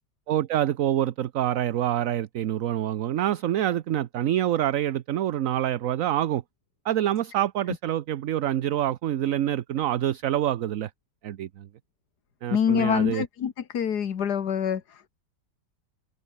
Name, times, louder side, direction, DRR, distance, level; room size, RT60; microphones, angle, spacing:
voice 1, 0.3-6.4 6.8-10.9 11.2-11.7 12.4-13.2, right 12 dB, 60° right, 1.0 m, -26 dB
voice 2, 12.5-15.1, left 8 dB, 70° left, 1.9 m, -26 dB
open air
omnidirectional pair, 1.8 m